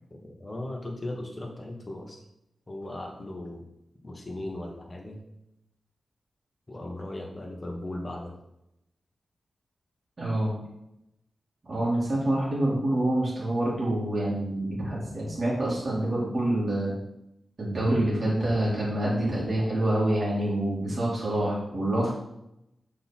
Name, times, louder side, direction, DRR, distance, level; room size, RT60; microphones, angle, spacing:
voice 1, 0.1-2.2 2.7-3.7 4.0-5.2 6.7-8.3, left 1 dB, 25° left, 1 dB, 1.4 m, -37 dB
voice 2, 10.2-10.5 11.6-16.9 17.6-22.1, right 1 dB, 40° right, -7 dB, 2.4 m, -26 dB
6.5 x 4.3 x 4.3 m, 0.84 s
wide cardioid pair, 100°, 0 cm